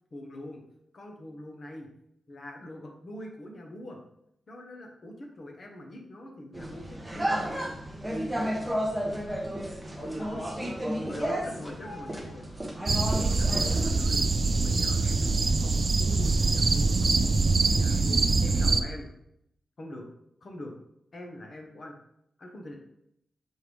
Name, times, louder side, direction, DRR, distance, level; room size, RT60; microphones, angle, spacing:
voice 1, 0.1-0.6 0.9-1.9 2.3-4.0 4.5-7.7 11.0-12.4 13.4-14.3 14.6-17.1 17.6-19.1 19.8-20.1 20.4-20.7 21.1-22.0 22.4-22.8, left 1 dB, 40° left, 2 dB, 1.0 m, -43 dB
sound 1, 6.5-13.9, equal, 5° right, 0.9 m, -32 dB
voice 2, 10.0-10.8 11.1-12.4, left 2 dB, 60° left, -2 dB, 1.8 m, -46 dB
sound 2, 12.9-18.8, right 3 dB, 40° right, 0.4 m, -24 dB
6.2 x 4.5 x 3.4 m, 0.76 s
wide cardioid pair, 145°, 0 cm